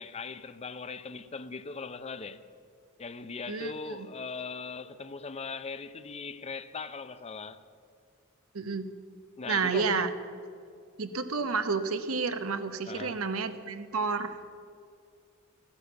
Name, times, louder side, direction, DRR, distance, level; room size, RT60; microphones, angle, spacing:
voice 1, 0.0-2.4 3.0-7.6 9.4-10.0 12.9-13.2, left 4 dB, 30° left, 0.6 m, -39 dB
voice 2, 3.5-4.1 8.5-8.8 9.5-10.1 11.0-14.4, right 4 dB, 85° right, 1.0 m, -30 dB
14.5 x 9.8 x 8.0 m
head